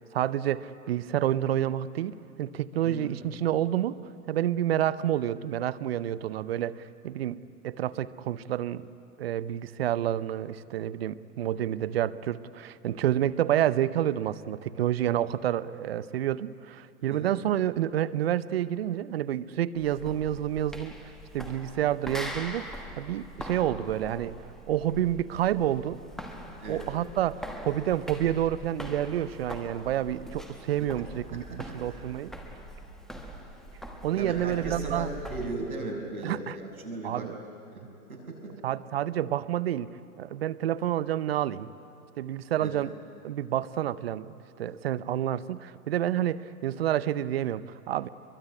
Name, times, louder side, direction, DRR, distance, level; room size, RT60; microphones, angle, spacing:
voice 1, 0.0-4.0 4.3-7.4 7.6-8.9 9.2-20.9 21.3-24.3 24.7-26.0 26.7-32.3 34.0-35.1 36.2-36.6 37.0-37.4 38.6-39.9 40.2-41.7 42.2-42.9 43.2-48.1, right 11 dB, 45° right, 17 dB, 0.7 m, -29 dB
voice 2, 2.8-3.1 11.9-12.0 17.1-17.4 26.6-26.8 31.3-31.6 31.9-32.0 34.1-37.3 37.7-37.8 38.1-38.6 42.6-42.8, right 2 dB, 75° right, 2 dB, 6.8 m, -37 dB
sound 1, 19.8-35.6, equal, ahead, 1.2 m, -42 dB
24.0 x 22.5 x 9.6 m, 2.6 s
hypercardioid pair, 140°, 44 cm